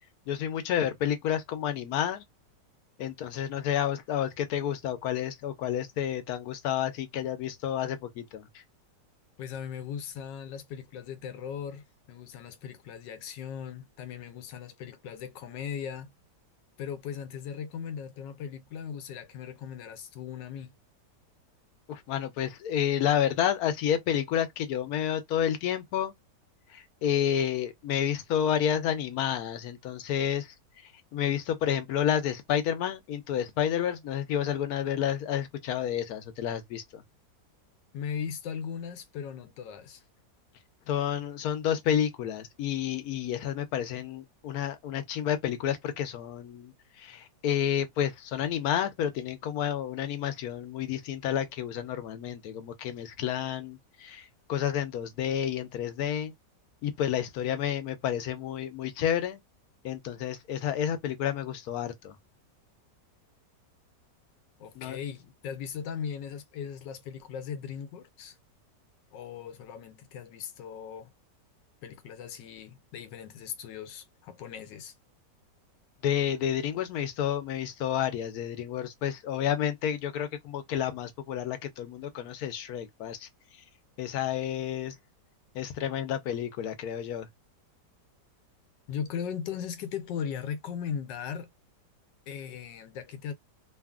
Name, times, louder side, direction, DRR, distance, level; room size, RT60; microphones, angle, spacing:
voice 1, 0.3-2.2 3.0-8.6 21.9-26.1 26.7-37.0 40.9-56.3 56.8-59.4 59.8-62.2 64.8-65.0 76.0-83.3 84.0-85.0 85.5-87.3, left 9 dB, 70° left, 1.0 m, -30 dB
voice 2, 9.4-16.1 16.8-20.7 37.9-40.0 64.6-68.4 69.1-71.1 71.8-74.9 88.9-91.5 92.3-93.3, left 7 dB, 85° left, 1.3 m, -38 dB
2.9 x 2.4 x 2.3 m
omnidirectional pair, 1.9 m